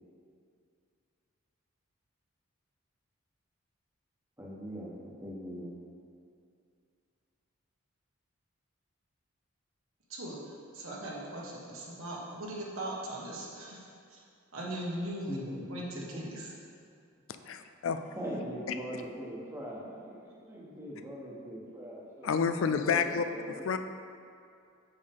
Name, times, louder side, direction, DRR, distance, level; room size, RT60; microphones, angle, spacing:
voice 1, 4.4-5.7 15.3-15.6 15.9-16.2 17.4-17.5 18.2-22.3 22.6-23.6, equal, 10° right, -4 dB, 1.1 m, -41 dB
voice 2, 10.7-14.2 14.5-15.4 15.7-16.5, right 1 dB, 75° right, -4 dB, 1.4 m, -39 dB
voice 3, 17.5-18.0 22.2-23.3 23.6-23.8, left 6 dB, 70° left, 9 dB, 0.4 m, -29 dB
7.5 x 6.3 x 3.6 m, 2.4 s
head